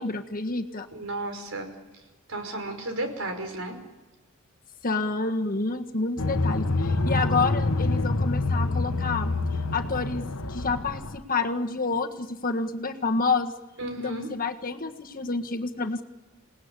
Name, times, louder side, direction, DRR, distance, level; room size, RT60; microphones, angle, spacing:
voice 1, 0.0-0.9 4.8-9.3 9.7-13.5 14.0-16.0, left 3 dB, 40° left, 5 dB, 1.6 m, -28 dB
voice 2, 0.9-1.7 2.3-3.8 13.8-14.3, right 2 dB, 65° right, 5 dB, 5.5 m, -33 dB
sound 1, 6.2-11.2, left 2 dB, 85° left, 1.2 m, -26 dB
28.5 x 19.0 x 9.9 m, 1.2 s
head